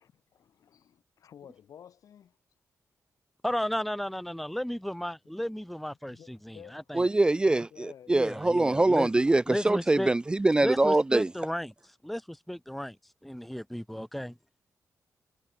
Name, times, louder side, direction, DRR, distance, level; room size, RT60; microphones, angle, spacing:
voice 1, 0.0-2.4 5.4-5.5 6.0-6.8 7.7-8.2, left 9 dB, 85° left, 5.1 m, -53 dB
voice 2, 3.4-7.1 8.1-9.1 9.5-10.1 10.6-13.0 13.2-14.3, equal, ahead, 1.0 m, -34 dB
voice 3, 7.0-11.3, right 2 dB, 15° right, 0.3 m, -24 dB
wide cardioid pair, 115°, 6 cm